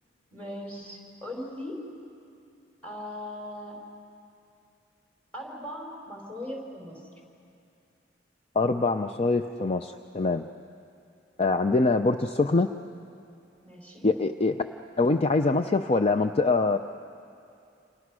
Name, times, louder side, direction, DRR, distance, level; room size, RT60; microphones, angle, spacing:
voice 1, 0.3-1.8 2.8-3.8 5.3-7.0 13.6-14.1, left 1 dB, 10° left, -1 dB, 4.6 m, -39 dB
voice 2, 8.6-10.5 11.4-12.7 14.0-14.6 15.0-16.8, left 3 dB, 35° left, 8 dB, 0.5 m, -24 dB
28.0 x 28.0 x 6.2 m, 2.6 s
head